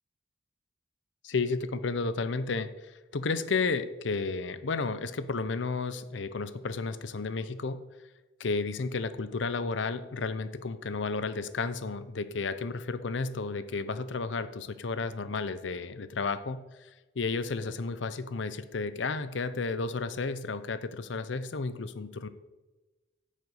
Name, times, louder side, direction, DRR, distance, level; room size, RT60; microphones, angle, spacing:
voice 1, 1.2-7.8 8.4-16.9 17.2-22.3, left 4 dB, 75° left, 12 dB, 0.6 m, -32 dB
9.3 x 5.2 x 6.4 m, 1.2 s
head